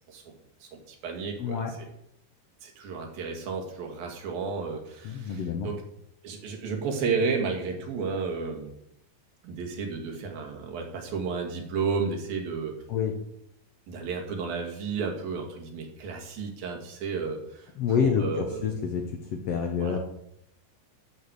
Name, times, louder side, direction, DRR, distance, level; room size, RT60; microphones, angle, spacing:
voice 1, 0.6-1.7 2.6-5.8 6.2-8.7 9.4-12.8 13.9-17.7 18.0-18.7 19.8-20.0, right 5 dB, 85° right, 2 dB, 3.6 m, -32 dB
voice 2, 1.4-1.7 5.0-5.7 12.9-13.1 17.8-20.0, left 7 dB, 70° left, 3 dB, 1.4 m, -28 dB
8.7 x 6.9 x 8.0 m, 0.77 s
omnidirectional pair, 4.1 m